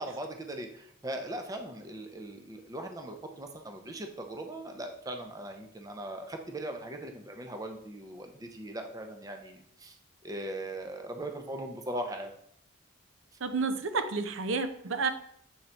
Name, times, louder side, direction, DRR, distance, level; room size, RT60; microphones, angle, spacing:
voice 1, 0.0-9.9 10.2-12.3, right 1 dB, 15° right, 5 dB, 0.5 m, -39 dB
voice 2, 13.4-15.1, right 4 dB, 75° right, 8 dB, 0.6 m, -30 dB
7.1 x 3.9 x 4.4 m, 0.69 s
head